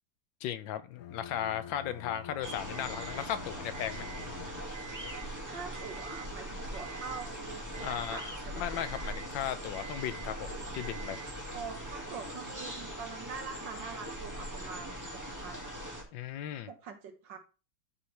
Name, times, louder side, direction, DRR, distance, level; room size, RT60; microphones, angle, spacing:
voice 1, 0.4-4.1 7.8-8.2 8.5-11.3 16.1-16.7, left 10 dB, 80° left, 1.4 m, -36 dB
Bowed string instrument, 0.9-5.0, left 8 dB, 65° left, 1.0 m, -47 dB
sound 1, 2.4-16.0, right 1 dB, 10° right, 1.9 m, -41 dB
Alarm, 2.7-3.3 3.7-4.3 4.7-5.3 5.7-6.3 6.7-7.3 7.7-8.3 8.7-9.3 9.7-10.3 10.7-11.3, right 9 dB, 35° right, 1.1 m, -48 dB
voice 2, 5.5-8.8 11.5-15.0 15.3-15.8 16.7-17.4, right 5 dB, 70° right, 1.9 m, -44 dB
12.5 x 4.4 x 3.3 m
omnidirectional pair, 2.0 m